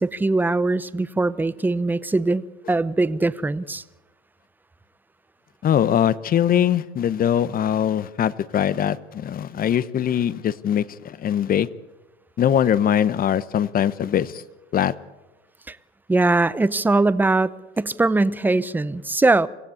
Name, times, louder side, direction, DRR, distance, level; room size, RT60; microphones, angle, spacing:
voice 1, 0.0-3.8 15.7-15.8 16.1-19.5, right 2 dB, 5° right, 16 dB, 0.7 m, -21 dB
voice 2, 5.6-11.7 12.4-14.4 14.7-14.9, left 9 dB, 30° left, 17 dB, 0.9 m, -21 dB
26.0 x 16.0 x 8.5 m, 1.1 s
supercardioid pair, 115°, 31 cm